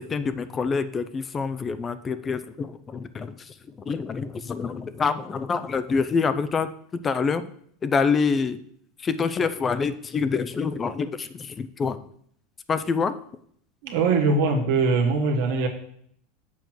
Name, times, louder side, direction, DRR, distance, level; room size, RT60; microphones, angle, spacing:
voice 1, 0.1-3.3 3.9-6.7 7.0-7.4 7.8-8.6 9.0-12.0 12.7-13.1, left 5 dB, 25° left, 12 dB, 0.6 m, -26 dB
voice 2, 13.8-15.7, right 4 dB, 75° right, 2 dB, 1.7 m, -22 dB
7.2 x 4.5 x 6.3 m, 0.64 s
hypercardioid pair, 100°, 0 cm